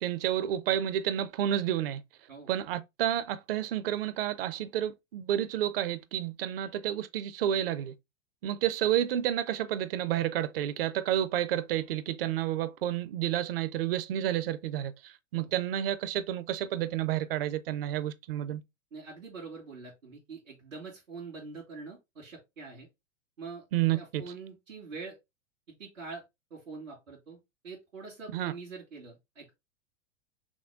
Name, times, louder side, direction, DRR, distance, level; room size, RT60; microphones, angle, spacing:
voice 1, 0.0-2.0 2.5-7.9 8.4-14.9 15.3-18.6 23.7-24.2 28.3-28.5, right 11 dB, 50° right, 0.6 m, -30 dB
voice 2, 18.9-22.9 23.4-23.6 23.9-25.2 25.8-26.2 26.5-27.4 27.6-29.5, right 4 dB, 80° right, 2.3 m, -44 dB
6.1 x 2.2 x 3.5 m
figure-of-eight pair, 100°, 38 cm